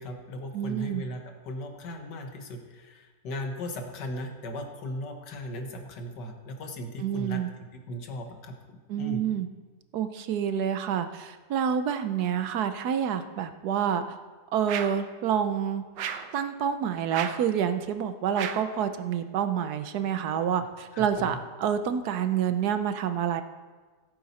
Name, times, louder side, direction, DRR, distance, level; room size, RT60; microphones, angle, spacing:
voice 1, 0.0-7.4 7.7-9.2 20.9-21.4, left 1 dB, 90° left, 4 dB, 1.9 m, -37 dB
voice 2, 0.5-1.0 7.0-7.5 8.9-9.5 9.9-14.2 14.5-15.8 16.3-23.4, right 8 dB, 70° right, 9 dB, 1.2 m, -28 dB
sound 1, 14.7-15.1 16.0-16.4 17.1-17.5 18.3-18.8, right 8 dB, 90° right, 1.3 m, -34 dB
16.0 x 8.6 x 4.2 m, 1.4 s
omnidirectional pair, 1.8 m